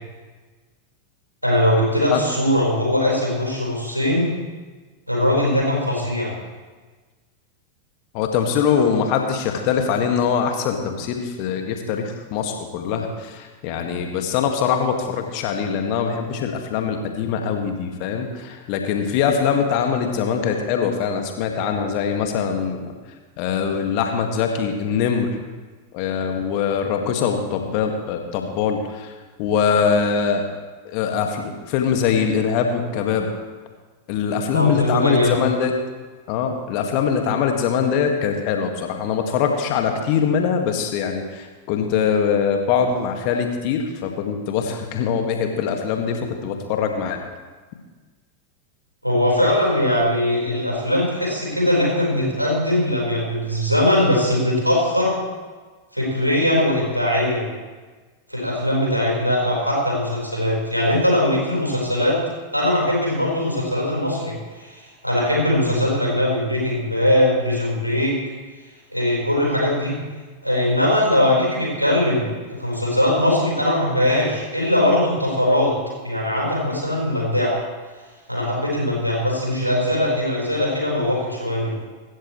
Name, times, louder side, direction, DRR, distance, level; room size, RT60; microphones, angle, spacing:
voice 1, 1.4-4.3 5.1-6.3 34.5-35.4 49.0-55.1 55.9-57.5 58.3-62.2 62.5-68.2 68.9-70.0 70.4-75.7 76.0-77.6 78.3-81.7, left 1 dB, 90° right, -4 dB, 4.6 m, -20 dB
voice 2, 8.1-22.9 23.4-25.3 25.9-29.1 29.4-30.4 30.8-33.3 34.1-35.7 36.3-47.2, left 7 dB, 45° left, 4 dB, 1.9 m, -22 dB
17.0 x 13.5 x 3.2 m, 1.4 s
figure-of-eight pair, 90°, 0 cm